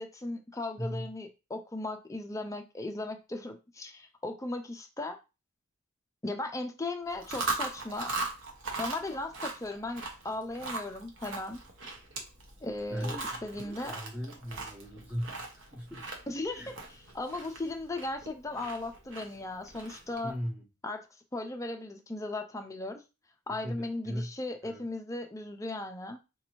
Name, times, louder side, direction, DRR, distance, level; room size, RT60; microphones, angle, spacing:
voice 1, 0.0-5.2 6.2-8.2 8.8-11.6 12.6-13.2 13.4-14.0 16.3-16.7 17.1-20.4 20.8-21.1 21.3-23.0 23.5-26.2, left 2 dB, 15° left, 0.4 m, -37 dB
voice 2, 0.8-1.1 12.9-13.4 13.6-16.1 16.5-16.7 20.2-20.6 23.6-24.3 24.6-24.8, equal, 5° right, 0.8 m, -38 dB
Chewing mastication, 7.1-20.3, right 3 dB, 60° right, 0.9 m, -39 dB
4.0 x 2.6 x 3.0 m
head